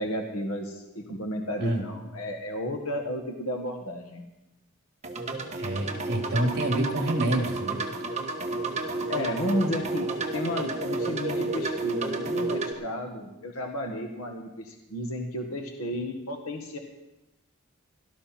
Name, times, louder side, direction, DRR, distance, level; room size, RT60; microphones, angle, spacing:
voice 1, 0.0-4.2 9.1-10.1 10.3-16.8, left 1 dB, 75° left, 3 dB, 1.7 m, -32 dB
sound 1, 5.0-12.7, right 3 dB, 30° right, 1.3 m, -31 dB
voice 2, 5.6-7.9, right 1 dB, 50° right, 1 dB, 2.5 m, -27 dB
18.0 x 12.5 x 4.3 m, 0.96 s
head